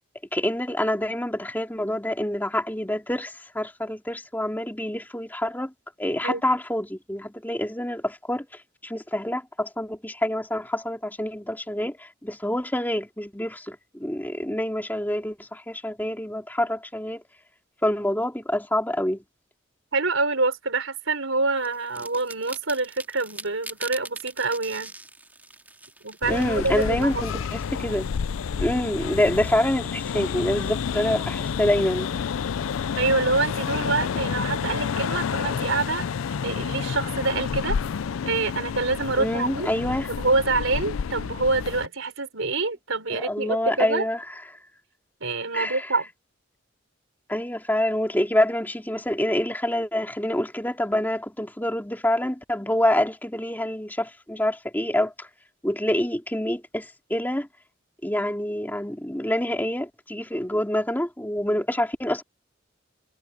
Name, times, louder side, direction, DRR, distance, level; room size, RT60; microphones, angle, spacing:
voice 1, 0.3-5.7 6.0-17.2 17.8-19.2 26.3-28.1 28.6-32.1 39.2-40.1 43.1-44.3 45.5-45.9 47.3-55.3 55.6-57.5 58.0-62.2, left 1 dB, 10° left, 2.7 m, -26 dB
voice 2, 19.9-24.9 26.0-27.2 33.0-36.1 36.4-37.8 38.2-39.7 40.1-44.0 45.2-46.1, right 3 dB, 80° right, 4.0 m, -26 dB
sound 1, 21.6-28.5, right 2 dB, 10° right, 2.1 m, -43 dB
sound 2, 26.2-41.9, left 6 dB, 85° left, 0.4 m, -29 dB
head